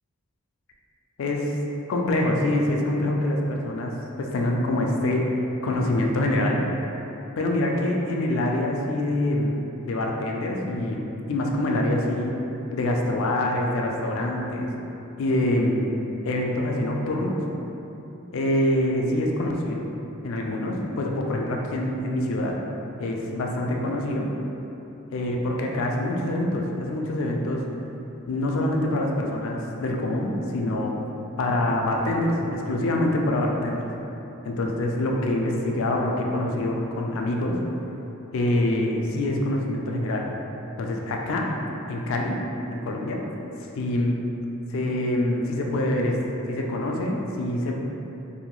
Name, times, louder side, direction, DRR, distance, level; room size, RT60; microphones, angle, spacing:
voice 1, 1.9-3.9 4.3-5.2 5.6-6.6 7.4-12.3 12.7-14.7 15.2-15.9 16.3-17.4 18.3-19.8 20.2-22.5 23.0-24.3 25.1-27.6 28.3-31.0 31.4-33.9 34.5-37.6 38.3-40.3 40.8-41.4 41.9-42.4 42.7-43.2 43.8-44.1 44.7-46.2 46.5-47.7, left 1 dB, 60° left, 0 dB, 0.3 m, -25 dB
2.7 x 2.2 x 3.0 m, 3.0 s
head